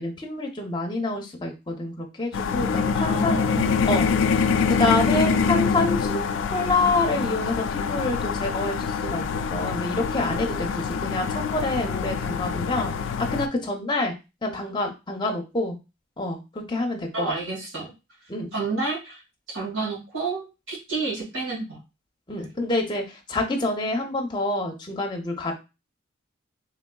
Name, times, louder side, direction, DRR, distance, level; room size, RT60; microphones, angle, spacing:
voice 1, 0.0-3.4 3.9-4.4 4.7-9.3 9.5-14.1 14.4-15.8 16.2-17.3 18.3-18.5 22.3-25.5, left 2 dB, 20° left, 1 dB, 0.7 m, -27 dB
sound 1, 2.3-13.5, left 6 dB, 70° left, 0.3 m, -25 dB
voice 2, 2.9-3.8 17.1-17.9 18.5-19.2 19.5-21.8 22.4-22.5, right 3 dB, 70° right, -4 dB, 1.9 m, -30 dB
3.5 x 3.5 x 2.3 m, 0.27 s
head